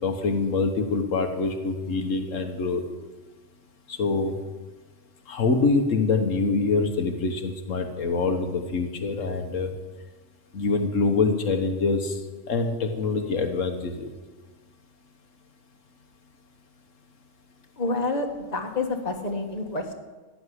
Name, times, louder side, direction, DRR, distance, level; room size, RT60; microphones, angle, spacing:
voice 1, 0.0-2.8 3.9-4.3 5.3-9.7 10.5-12.2 12.5-14.1, left 4 dB, 85° left, 5 dB, 1.6 m, -25 dB
voice 2, 17.8-19.9, left 3 dB, 35° left, 3 dB, 1.6 m, -28 dB
14.5 x 7.0 x 9.9 m, 1.3 s
omnidirectional pair, 1.3 m